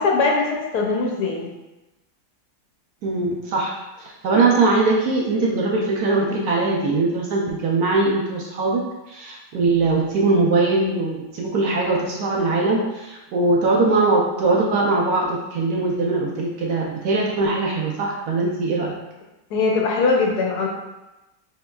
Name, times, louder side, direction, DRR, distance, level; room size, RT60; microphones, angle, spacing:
voice 1, 0.0-1.5 19.5-20.7, left 4 dB, 70° left, -1 dB, 1.1 m, -21 dB
voice 2, 3.0-19.0, right 3 dB, 70° right, -2 dB, 1.0 m, -21 dB
4.5 x 3.6 x 2.3 m, 1.0 s
omnidirectional pair, 1.9 m